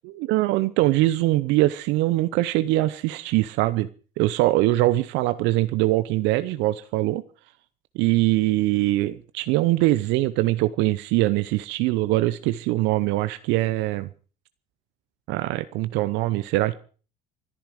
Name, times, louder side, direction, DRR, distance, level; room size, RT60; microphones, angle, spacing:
voice 1, 0.0-3.9 4.2-7.2 7.9-14.1 15.3-16.7, right 17 dB, 65° right, 13 dB, 0.8 m, -22 dB
26.5 x 10.5 x 4.9 m, 0.40 s
hypercardioid pair, 65°, 20 cm